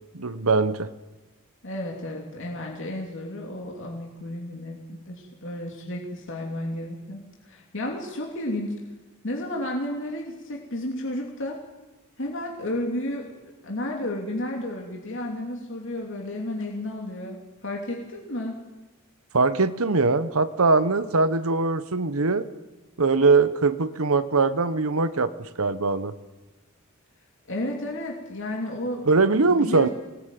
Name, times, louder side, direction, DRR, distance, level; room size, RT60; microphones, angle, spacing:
voice 1, 0.1-0.9 19.3-22.5 23.0-25.3 25.6-26.1 29.1-29.9, right 3 dB, 85° right, 13 dB, 1.0 m, -21 dB
voice 2, 1.6-8.7 9.2-11.6 12.2-13.3 13.6-18.6 27.5-29.9, left 1 dB, 60° left, 0 dB, 3.0 m, -32 dB
24.0 x 19.0 x 9.2 m, 1.2 s
head